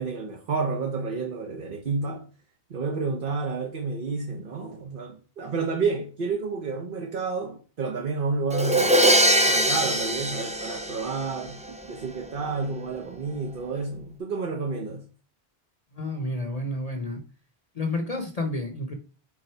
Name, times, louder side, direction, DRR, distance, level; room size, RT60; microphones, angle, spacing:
voice 1, 0.0-2.2 2.7-9.0 9.5-15.0, right 4 dB, 55° right, 1.1 m, -30 dB
Crash cymbal, 8.5-11.5, right 1 dB, 10° right, 0.3 m, -22 dB
voice 2, 15.9-17.2 17.7-18.9, left 2 dB, 40° left, 0.9 m, -30 dB
6.3 x 4.1 x 4.5 m
omnidirectional pair, 1.1 m